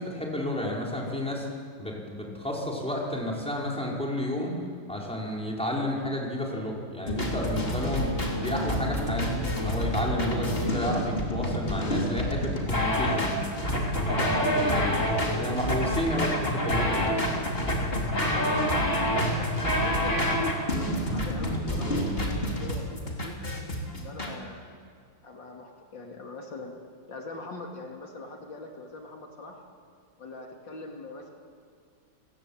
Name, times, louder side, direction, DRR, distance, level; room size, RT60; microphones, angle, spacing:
voice 1, 0.0-1.4 1.8-4.5 4.9-8.1 8.4-13.4 14.1-17.1, left 1 dB, 5° left, -2 dB, 5.1 m, -31 dB
sound 1, 7.1-24.3, equal, 30° left, 3.7 m, -27 dB
voice 2, 14.1-15.7 18.2-20.5 21.1-23.4 23.9-24.7 25.2-26.7 27.1-29.6 30.2-31.3, left 2 dB, 65° left, 2 dB, 3.3 m, -42 dB
30.0 x 20.0 x 8.9 m, 2.2 s
omnidirectional pair, 2.2 m